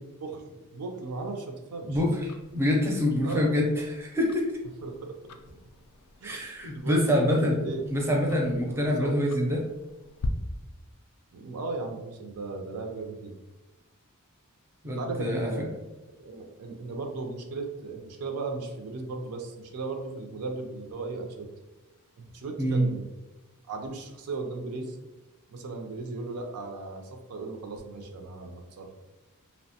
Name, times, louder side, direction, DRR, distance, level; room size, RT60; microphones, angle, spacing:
voice 1, 0.2-2.0 3.2-3.5 4.8-5.2 6.2-6.4 6.7-7.8 8.7-9.2 11.3-13.4 14.8-15.7 16.2-21.5 22.2-23.1 23.7-25.0 25.5-28.9, right 3 dB, 75° right, 3 dB, 0.4 m, -36 dB
Tick-tock, 1.9-10.3, left 6 dB, 80° left, 0.3 m, -47 dB
voice 2, 1.9-4.5 6.2-7.6 7.9-9.6 14.8-15.5 22.6-22.9, left 1 dB, 10° right, -1 dB, 0.5 m, -26 dB
2.8 x 2.1 x 2.7 m, 1.0 s
head